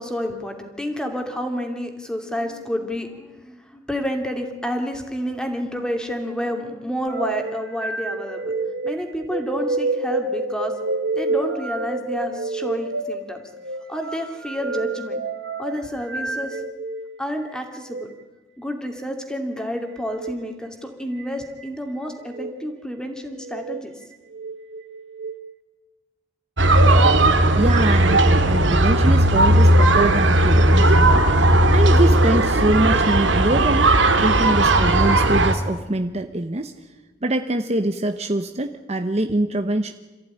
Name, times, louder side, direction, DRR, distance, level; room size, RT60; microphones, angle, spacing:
voice 1, 0.0-8.5 8.8-10.7 11.2-13.4 13.9-15.2 15.6-16.6 17.2-18.1 18.6-22.1 22.4-23.9, equal, 5° left, 4 dB, 2.6 m, -29 dB
sound 1, 7.1-17.0 17.8-18.1 20.1-20.4 21.2-21.7 22.2-22.5 23.3-23.8 24.3-25.4, right 3 dB, 70° right, 1.6 m, -29 dB
sound 2, 26.6-35.5, right 1 dB, 90° right, 2.0 m, -16 dB
voice 2, 27.5-36.8 37.2-39.9, right 1 dB, 35° right, 7 dB, 0.9 m, -24 dB
27.5 x 15.0 x 10.0 m, 1.2 s
head